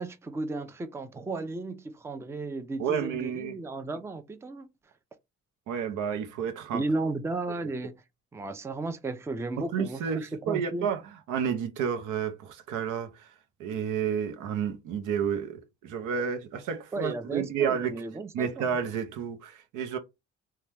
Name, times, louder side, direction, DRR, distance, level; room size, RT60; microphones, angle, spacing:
voice 1, 0.0-4.7 6.7-7.9 8.3-10.9 16.9-18.8, right 2 dB, 10° right, 0.4 m, -34 dB
voice 2, 2.8-3.6 5.7-6.8 9.6-11.0 11.3-13.3 13.6-18.0 18.3-20.0, right 7 dB, 85° right, 0.6 m, -31 dB
2.8 x 2.2 x 3.3 m
cardioid pair, 90°, 30 cm